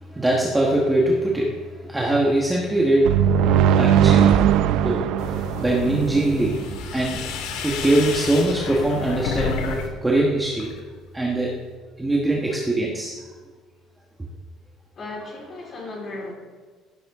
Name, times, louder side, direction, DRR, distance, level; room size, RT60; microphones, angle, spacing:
voice 1, 0.1-3.1 3.8-4.4 4.8-6.6 6.9-7.4 7.6-10.7 11.1-11.5 12.0-13.1, right 1 dB, 5° right, -3 dB, 1.3 m, -22 dB
sound 1, 3.0-6.8, right 9 dB, 65° right, 0.5 m, -19 dB
sound 2, 5.2-9.9 10.2-10.8, left 5 dB, 80° left, 1.9 m, -31 dB
voice 2, 15.0-16.3, left 2 dB, 30° left, -2 dB, 3.9 m, -35 dB
15.0 x 12.5 x 3.6 m, 1.5 s
cardioid pair, 175°, 0 cm